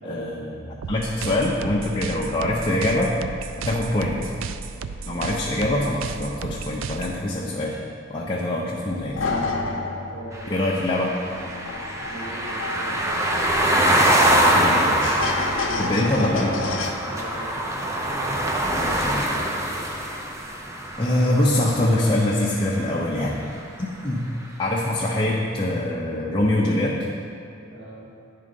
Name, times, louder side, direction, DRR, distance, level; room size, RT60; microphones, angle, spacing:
voice 1, 0.0-3.1 3.6-4.2 5.1-7.8 8.1-9.2 10.5-11.1 14.6-15.2 15.8-16.6 18.7-19.2 21.0-23.4 23.8-24.2 24.6-27.0, left 1 dB, 25° left, -4 dB, 0.6 m, -24 dB
sound 1, 0.8-7.2, right 5 dB, 80° right, 0.3 m, -34 dB
sound 2, 8.9-16.9, left 3 dB, 75° left, 0.7 m, -30 dB
voice 2, 10.1-10.6 12.0-13.2 16.0-16.8 17.1-17.9 24.1-24.4 27.7-28.1, right 1 dB, 60° right, -12 dB, 1.9 m, -38 dB
sound 3, 10.3-22.4, right 1 dB, 15° right, 0.6 m, -24 dB
10.0 x 3.7 x 5.2 m, 2.5 s
head